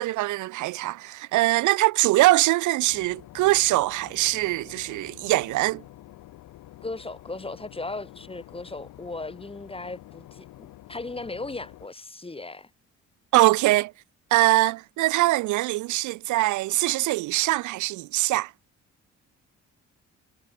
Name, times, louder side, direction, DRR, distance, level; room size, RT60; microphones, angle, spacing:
voice 1, 0.0-5.8 13.3-13.9 14.3-18.5, right 18 dB, 75° right, 0.5 m, -22 dB
Boat Water vehicle / Engine, 2.9-11.9, left 15 dB, 90° left, 7.5 m, -48 dB
voice 2, 6.8-12.7, left 2 dB, 20° left, 6.8 m, -37 dB
cardioid pair, 90°, 30 cm